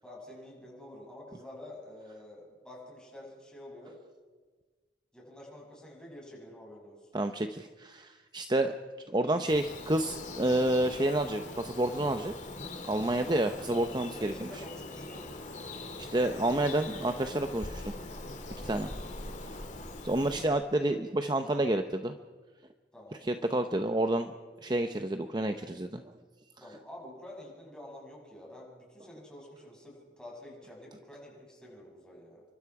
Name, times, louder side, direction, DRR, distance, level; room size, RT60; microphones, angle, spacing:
voice 1, 0.0-4.0 5.1-7.1 13.1-13.4 13.6-15.3 18.7-18.9 22.9-23.2 26.6-32.4, left 1 dB, 5° left, -3 dB, 7.4 m, -48 dB
voice 2, 7.1-8.7 9.0-12.3 12.9-14.5 16.0-17.9 18.6-18.9 19.4-19.6 20.0-22.1 23.2-24.3 24.6-26.0, right 1 dB, 25° right, 7 dB, 0.8 m, -29 dB
Bird vocalization bird call bird song, 9.5-20.4, left 2 dB, 45° left, 2.4 m, -42 dB
29.0 x 24.0 x 4.9 m, 1.4 s
head